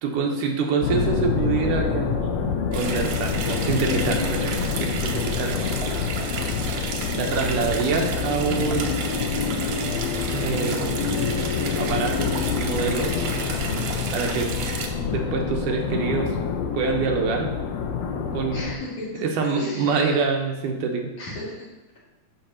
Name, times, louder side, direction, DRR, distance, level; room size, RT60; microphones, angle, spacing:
voice 1, 0.0-4.5 4.8-5.6 7.2-8.9 10.3-11.0 11.8-12.3 12.6-13.1 14.1-14.5 15.1-16.3 16.7-17.5 18.3-18.7 19.2-21.1, right 5 dB, 85° right, 1 dB, 2.5 m, -26 dB
sound 1, 0.8-18.8, left 6 dB, 80° left, 1.5 m, -26 dB
sound 2, 2.7-14.9, right 5 dB, 70° right, 1.7 m, -33 dB
voice 2, 18.5-19.1 19.5-20.2 21.2-21.5, left 1 dB, 50° left, -7 dB, 3.1 m, -34 dB
11.5 x 5.8 x 2.9 m, 1.1 s
omnidirectional pair, 3.6 m